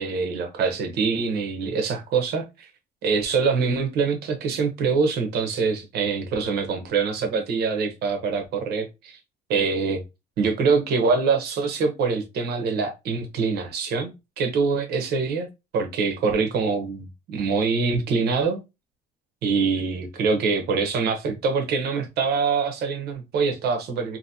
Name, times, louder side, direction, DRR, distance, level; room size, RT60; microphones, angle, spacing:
voice 1, 0.0-2.7 3.0-9.2 9.5-10.0 10.4-14.1 14.4-15.5 15.7-18.6 19.4-24.2, right 5 dB, 70° right, 0.9 m, -24 dB
2.8 x 2.8 x 2.6 m
cardioid pair, 110°, 17 cm